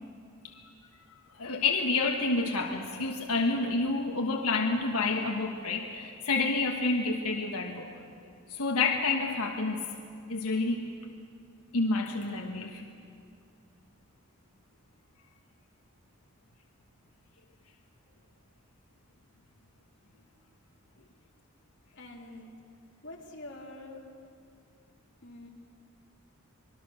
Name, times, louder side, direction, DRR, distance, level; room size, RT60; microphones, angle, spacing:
voice 1, 1.3-7.9 8.5-10.0 10.3-10.9 11.7-12.8, left 3 dB, 90° left, 2 dB, 1.4 m, -29 dB
voice 2, 22.0-22.5 23.0-24.0 25.2-25.5, left 2 dB, 55° left, -1 dB, 3.1 m, -45 dB
25.5 x 21.5 x 6.5 m, 2.4 s
head